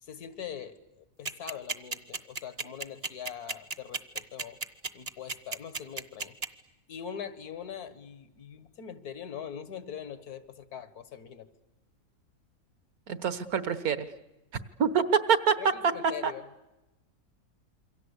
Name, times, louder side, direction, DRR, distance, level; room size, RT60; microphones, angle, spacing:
voice 1, 0.0-4.6 4.9-6.4 6.9-11.5 15.6-16.4, left 8 dB, 75° left, 13 dB, 1.9 m, -42 dB
sound 1, 1.3-6.5, right 3 dB, 30° right, 0.9 m, -33 dB
voice 2, 13.1-14.1 14.8-15.5 15.8-15.9 16.2-16.3, right 7 dB, 70° right, 13 dB, 1.7 m, -25 dB
28.0 x 23.5 x 8.2 m, 0.99 s
omnidirectional pair, 1.6 m